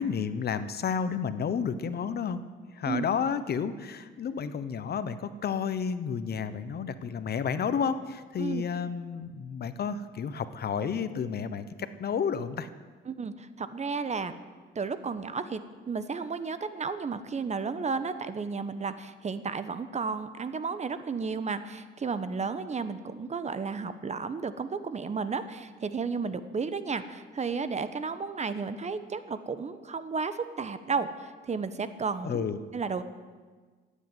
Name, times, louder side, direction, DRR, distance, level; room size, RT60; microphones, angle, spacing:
voice 1, 0.0-2.4 2.7-12.7 32.2-32.6, left 6 dB, 55° left, 12 dB, 0.9 m, -31 dB
voice 2, 13.1-14.4 14.7-32.4 32.7-33.0, right 5 dB, 35° right, 12 dB, 1.0 m, -33 dB
15.0 x 8.5 x 9.1 m, 1.4 s
cardioid pair, 90°, 20 cm